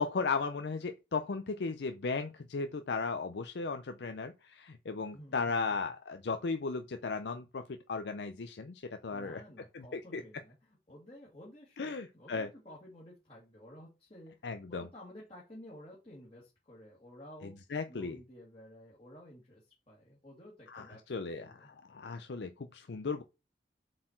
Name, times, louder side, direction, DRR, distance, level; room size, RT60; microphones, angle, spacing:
voice 1, 0.0-7.6 7.9-9.4 9.7-10.2 11.8-12.5 14.4-14.9 17.7-18.2 20.7-21.5 21.9-23.2, left 4 dB, 75° left, 0.5 m, -36 dB
voice 2, 5.1-5.8 8.9-14.4 14.7-17.5 17.9-21.7, equal, 35° left, 2.3 m, -53 dB
7.5 x 4.4 x 4.4 m
head